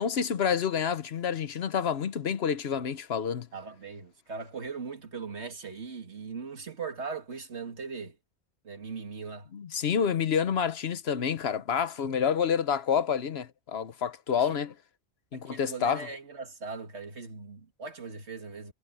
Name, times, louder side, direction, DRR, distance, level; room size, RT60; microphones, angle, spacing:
voice 1, 0.0-3.5 9.5-14.7 15.3-16.1, left 7 dB, 65° left, 1.1 m, -28 dB
voice 2, 3.5-8.2 8.6-9.5 14.4-14.6 15.3-18.7, right 5 dB, 80° right, 2.4 m, -39 dB
omnidirectional pair, 1.1 m